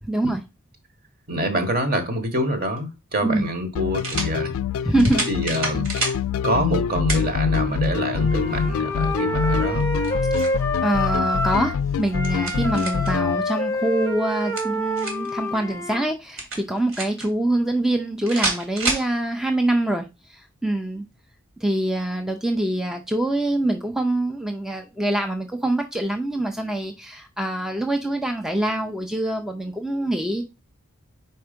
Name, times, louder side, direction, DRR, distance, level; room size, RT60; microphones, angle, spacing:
voice 1, 0.0-0.4 3.2-3.5 4.8-5.3 10.8-21.1 21.6-30.4, right 1 dB, ahead, 0.4 m, -24 dB
voice 2, 1.3-4.5 5.3-5.9 6.4-9.8 12.5-12.7, equal, 45° right, 1.2 m, -26 dB
sound 1, 2.7-2.8 4.0-4.3 5.0-6.2 7.1-7.3 7.8-7.9 9.8-10.6 11.9-13.1 14.3-15.3 16.4-17.3 18.3-19.1, right 2 dB, 65° right, 2.0 m, -28 dB
sound 2, 3.7-13.4, left 6 dB, 75° left, 0.3 m, -25 dB
Wind instrument woodwind instrument, 8.2-11.8 12.1-16.1, equal, 15° left, 0.8 m, -27 dB
4.5 x 4.3 x 5.0 m
head